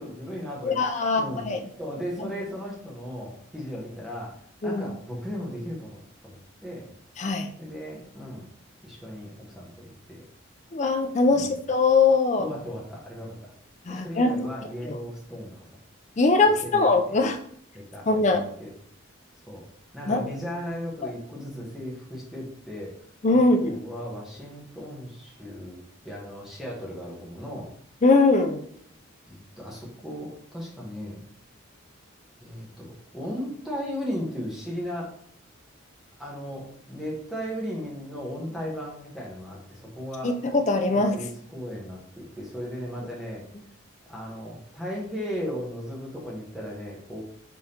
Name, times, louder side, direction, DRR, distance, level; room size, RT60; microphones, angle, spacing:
voice 1, 0.0-1.4 1.8-6.9 7.6-8.4 8.8-10.2 11.3-11.5 12.4-13.5 13.9-15.7 16.4-17.2 17.7-18.7 19.5-19.7 19.9-22.9 23.3-27.7 29.3-31.2 32.4-35.1 36.2-40.4 41.1-43.4 44.1-47.2, equal, ahead, -4 dB, 1.1 m, -36 dB
voice 2, 0.6-1.6 2.2-2.3 4.6-4.8 7.2-7.5 10.7-12.5 13.9-14.5 14.8-15.0 16.2-17.4 18.1-18.4 20.1-20.2 21.0-21.1 23.2-23.8 28.0-28.6 40.2-41.2, left 3 dB, 35° left, 5 dB, 0.4 m, -22 dB
5.2 x 3.6 x 2.8 m, 0.63 s
head